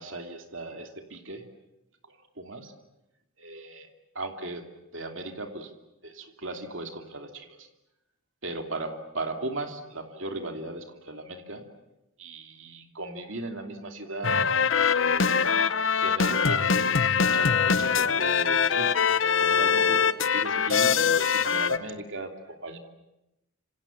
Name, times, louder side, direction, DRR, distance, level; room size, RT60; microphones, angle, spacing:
voice 1, 0.0-1.5 2.1-2.7 3.4-3.9 4.1-5.7 6.0-7.7 8.4-11.7 12.2-14.5 15.0-15.4 16.0-19.0 19.4-22.8, right 2 dB, 60° right, 4 dB, 2.8 m, -37 dB
sound 1, 14.2-21.8, left 6 dB, 60° left, 0.9 m, -23 dB
27.0 x 26.0 x 7.3 m, 0.92 s
head